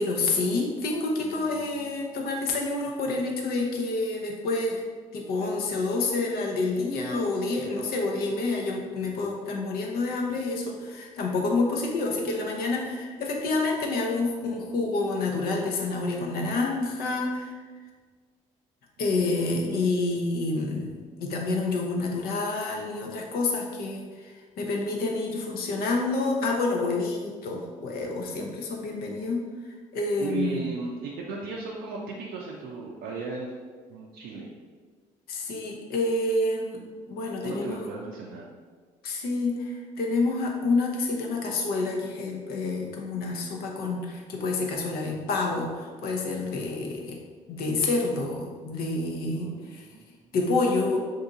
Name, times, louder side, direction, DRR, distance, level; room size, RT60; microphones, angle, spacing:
voice 1, 0.0-4.8 5.1-17.5 19.0-30.6 35.3-37.8 39.0-47.2 47.5-49.9 50.3-51.0, left 3 dB, 65° left, 0 dB, 0.7 m, -28 dB
voice 2, 1.2-1.8 19.2-19.9 30.2-33.5 33.9-34.5 37.4-38.5 49.3-50.2 50.8-50.9, right 4 dB, 70° right, -3 dB, 0.4 m, -36 dB
2.7 x 2.6 x 3.7 m, 1.5 s
hypercardioid pair, 55°, 17 cm